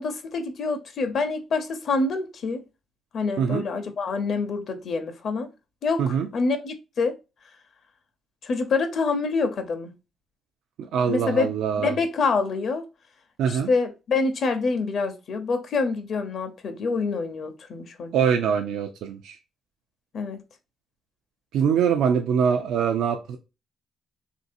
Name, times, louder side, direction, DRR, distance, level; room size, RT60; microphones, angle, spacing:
voice 1, 0.0-2.6 3.1-5.5 5.8-7.1 8.4-9.9 11.1-11.5 11.8-12.9 13.5-18.1 20.1-20.4, left 4 dB, 60° left, 0.7 m, -26 dB
voice 2, 10.8-12.0 13.4-13.7 18.1-19.4 21.5-23.4, right 7 dB, 85° right, 0.4 m, -23 dB
3.1 x 2.6 x 2.6 m
cardioid pair, 90°, 0 cm